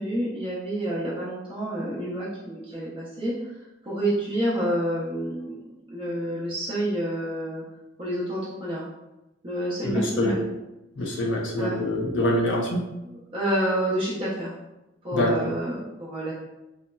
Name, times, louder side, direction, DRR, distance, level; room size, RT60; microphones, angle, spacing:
voice 1, 0.0-3.3 3.8-5.6 5.9-7.6 8.0-8.8 9.4-10.4 11.0-11.2 11.6-11.8 13.0-14.5 15.0-16.3, right 1 dB, 25° right, -8 dB, 0.6 m, -28 dB
voice 2, 9.8-10.4 11.0-12.9 15.1-15.3, left 1 dB, 65° left, -1 dB, 0.6 m, -25 dB
4.0 x 2.0 x 2.2 m, 0.96 s
head